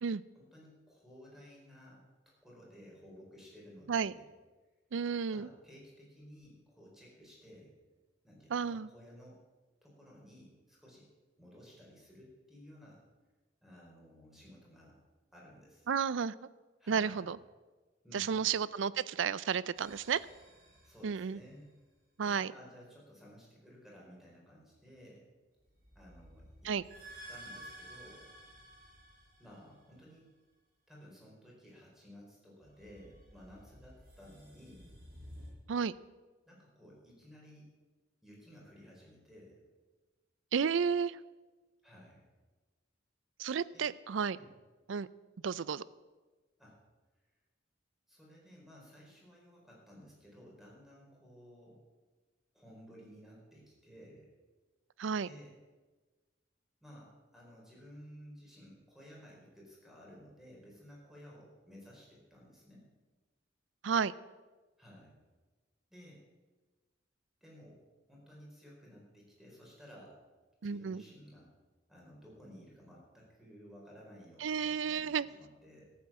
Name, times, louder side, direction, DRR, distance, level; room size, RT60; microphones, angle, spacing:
voice 1, 0.3-4.2 5.3-7.7 8.2-9.4 9.8-11.1 11.4-13.0 13.6-15.0 15.3-15.9 16.8-17.3 18.0-18.5 20.8-21.7 22.2-25.2 25.9-26.7 27.3-28.3 29.4-30.3 30.9-34.9 36.5-37.7 38.2-39.6 41.8-42.2 43.7-44.0 44.4-44.5 46.6-46.8 48.1-51.8 52.5-54.3 55.2-55.5 56.8-62.9 64.8-65.2 65.9-66.2 67.4-67.8 68.1-70.2 70.6-71.5 71.9-75.9, equal, ahead, -3 dB, 4.6 m, -55 dB
voice 2, 4.9-5.5 8.5-8.9 15.9-16.3 16.9-17.4 18.1-20.2 21.0-21.4 22.2-22.5 26.7-26.8 35.7-35.9 40.5-41.2 43.4-44.4 44.9-45.1 45.4-45.8 55.0-55.3 63.8-64.1 70.6-71.0 74.4-75.3, right 6 dB, 80° right, 19 dB, 0.4 m, -32 dB
sound 1, 19.8-21.7 25.6-30.1 32.6-35.5, right 1 dB, 55° right, 5.5 m, -53 dB
14.5 x 8.9 x 7.5 m, 1.3 s
head